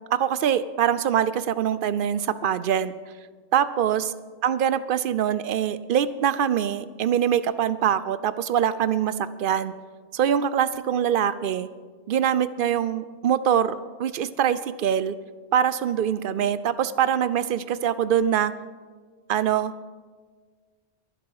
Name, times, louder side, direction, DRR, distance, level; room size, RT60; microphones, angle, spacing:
voice 1, 0.1-2.9 3.5-4.1 4.4-9.1 9.4-9.7 10.1-11.7 12.1-13.7 14.0-15.2 15.5-18.5 19.3-19.7, right 9 dB, 60° right, 15 dB, 0.6 m, -23 dB
22.0 x 7.7 x 4.8 m, 1.5 s
omnidirectional pair, 1.2 m